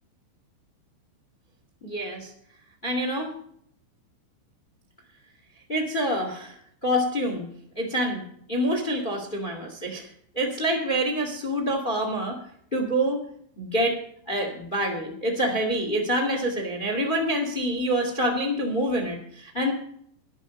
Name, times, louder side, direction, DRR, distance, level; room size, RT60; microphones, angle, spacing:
voice 1, 1.8-2.3 2.8-3.3 5.7-6.5 6.8-7.5 7.7-8.2 8.5-10.1 10.3-12.4 12.7-13.2 13.6-14.0 14.3-19.7, equal, 20° left, 4 dB, 1.3 m, -26 dB
12.0 x 11.5 x 5.2 m, 0.66 s
omnidirectional pair, 5.2 m